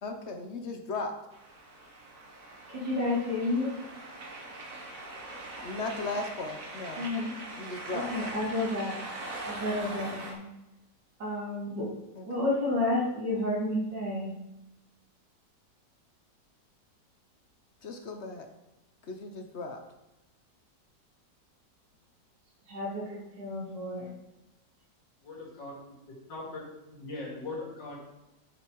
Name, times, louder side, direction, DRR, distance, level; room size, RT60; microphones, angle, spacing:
voice 1, 0.0-1.1 5.6-7.0 7.6-8.1 12.2-12.3 17.8-18.5 19.1-19.8, left 3 dB, 50° left, 5 dB, 0.9 m, -36 dB
sound 1, 1.3-10.3, right 2 dB, 50° right, 1.6 m, -42 dB
voice 2, 2.7-3.7 7.0-7.3 7.9-9.0 9.4-10.4 11.2-11.9 12.3-14.3 22.7-24.1, left 2 dB, 85° right, -4 dB, 3.1 m, -31 dB
voice 3, 25.2-25.7 26.3-28.0, left 2 dB, 85° left, -3 dB, 3.1 m, -40 dB
10.0 x 5.3 x 4.6 m, 0.94 s
omnidirectional pair, 1.9 m